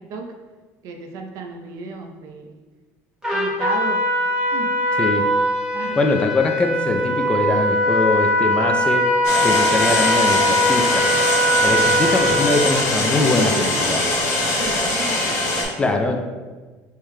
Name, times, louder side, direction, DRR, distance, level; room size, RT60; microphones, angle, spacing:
voice 1, 0.8-2.4 3.3-4.0 4.5-4.7 5.7-6.0 12.7-15.8, right 3 dB, 65° right, 3 dB, 0.6 m, -33 dB
Trumpet, 3.2-12.8, equal, 10° right, 1.1 m, -20 dB
voice 2, 5.0-5.3 6.0-9.1 9.4-11.1 11.6-14.0 15.8-16.2, left 3 dB, 15° left, 4 dB, 0.3 m, -22 dB
sound 1, 9.2-15.6, left 2 dB, 70° left, 1.3 m, -22 dB
5.5 x 3.2 x 2.2 m, 1.3 s
cardioid pair, 135°, 6 cm